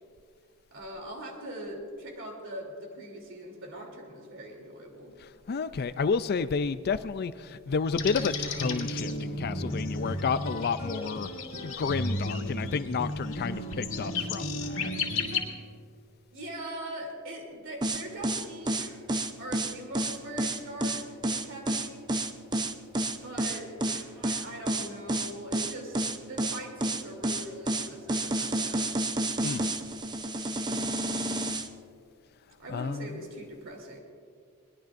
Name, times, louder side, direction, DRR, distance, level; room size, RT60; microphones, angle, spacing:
voice 1, 0.7-5.2 16.3-19.1 19.4-22.0 23.2-26.0 26.2-29.0 30.6-31.0 32.6-34.0, right 1 dB, 60° right, 3.1 m, -41 dB
voice 2, 5.2-11.3 11.6-14.9 29.4-29.7 32.7-33.2, left 5 dB, 45° left, 0.4 m, -31 dB
sound 1, 7.9-15.4, left 2 dB, 65° left, 2.3 m, -33 dB
sound 2, 17.8-31.7, right 1 dB, 20° right, 0.7 m, -29 dB
22.0 x 20.5 x 2.6 m
head